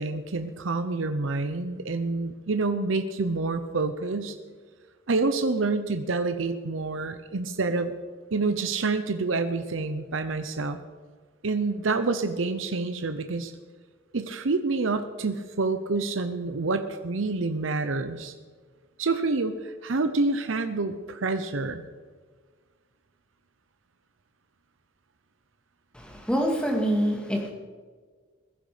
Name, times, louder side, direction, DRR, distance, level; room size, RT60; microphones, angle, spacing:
voice 1, 0.0-4.3 5.1-7.9 8.3-10.8 11.4-13.5 14.1-18.3 19.0-21.9, right 3 dB, 90° right, 9 dB, 0.8 m, -27 dB
voice 2, 25.9-27.5, equal, 5° left, 1 dB, 2.1 m, -26 dB
21.0 x 10.5 x 5.1 m, 1.5 s
head